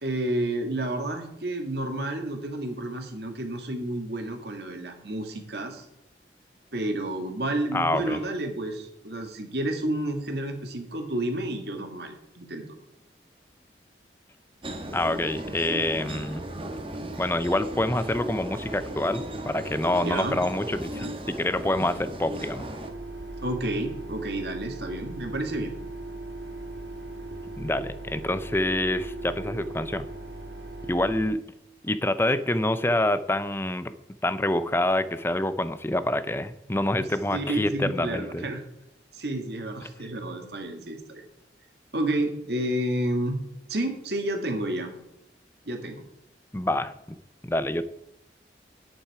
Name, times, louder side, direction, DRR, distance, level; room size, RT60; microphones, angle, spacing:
voice 1, 0.0-5.9 6.7-12.6 19.8-20.4 23.4-25.7 37.0-37.1 37.3-38.6 39.1-41.2 41.9-43.4 43.7-44.9 45.7-46.0, right 1 dB, 65° right, 4 dB, 2.0 m, -30 dB
voice 2, 7.7-8.2 14.9-16.4 17.2-22.7 27.6-30.1 30.9-31.4 31.8-33.9 34.2-38.5 46.5-47.2 47.4-47.8, left 1 dB, 15° left, 13 dB, 0.5 m, -26 dB
sound 1, 14.6-22.9, right 1 dB, 30° right, 1.3 m, -36 dB
sound 2, 22.8-31.3, right 2 dB, 90° right, 2.9 m, -39 dB
10.5 x 8.9 x 4.8 m, 0.84 s
head